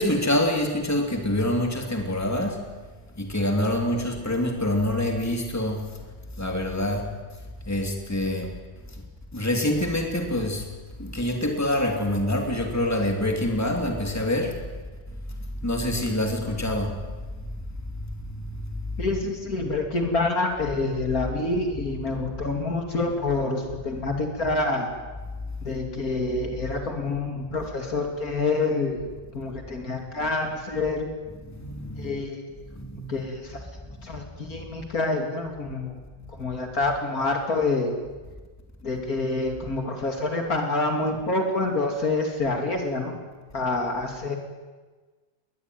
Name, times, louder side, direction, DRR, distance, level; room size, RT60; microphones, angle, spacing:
voice 1, 0.0-2.6 3.1-5.9 6.4-7.1 7.7-8.5 8.9-9.0 9.3-10.7 11.0-14.6 15.3-17.0 17.4-17.5 17.9-18.6 22.1-22.2 31.5-32.2 32.5-33.1 34.1-34.2 34.6-34.7, left 1 dB, 10° left, 3 dB, 3.1 m, -26 dB
voice 2, 19.0-24.9 25.6-29.0 29.3-31.1 32.0-32.4 33.1-33.6 34.0-35.9 36.4-37.9 38.8-43.2 43.5-44.4, left 3 dB, 50° left, 3 dB, 3.2 m, -27 dB
21.0 x 19.5 x 9.6 m, 1.3 s
omnidirectional pair, 2.0 m